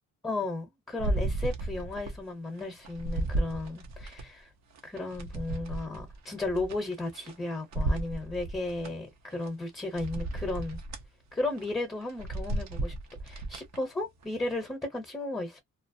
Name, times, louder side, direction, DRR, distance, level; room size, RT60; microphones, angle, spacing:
voice 1, 0.2-4.5 4.8-10.8 11.3-12.9 13.2-15.6, left 2 dB, 10° left, 0.8 m, -34 dB
sound 1, 1.0-2.2 2.6-4.2 4.7-7.3 7.7-8.9 9.4-9.5 9.9-11.1 11.5-11.7 12.1-13.8 14.2-14.3, right 2 dB, 65° right, 0.7 m, -33 dB
2.4 x 2.0 x 2.6 m
cardioid pair, 130°, 30 cm